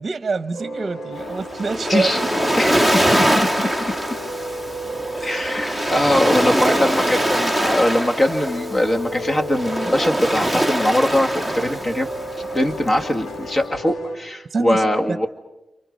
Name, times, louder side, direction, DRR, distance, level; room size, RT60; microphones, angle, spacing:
voice 1, 0.0-2.3 5.2-5.3 5.9-6.1 6.6-6.8 14.5-15.3, right 4 dB, 45° right, 11 dB, 0.9 m, -26 dB
sound 1, 0.5-14.2, left 1 dB, 85° left, 4.6 m, -33 dB
Waves surf, 1.2-13.6, right 1 dB, 15° left, 2.0 m, -23 dB
voice 2, 2.6-3.9 5.2-12.1 12.4-15.3, left 1 dB, 40° left, 4 dB, 2.1 m, -22 dB
30.0 x 28.0 x 5.4 m, 0.98 s
cardioid pair, 75°, 0 cm